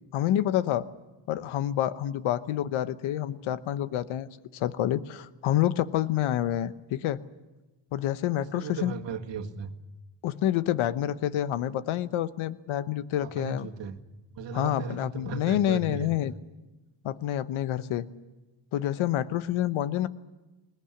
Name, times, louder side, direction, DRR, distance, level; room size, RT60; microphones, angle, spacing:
voice 1, 0.1-0.9 1.3-7.2 7.9-8.9 10.2-13.7 14.5-16.3 17.0-18.1 18.7-20.1, left 12 dB, 85° left, 14 dB, 1.1 m, -28 dB
voice 2, 8.4-9.8 13.2-14.0 14.4-16.1, right 5 dB, 65° right, 4 dB, 2.0 m, -37 dB
20.5 x 19.5 x 9.9 m, 1.1 s
cardioid pair, 95°, 47 cm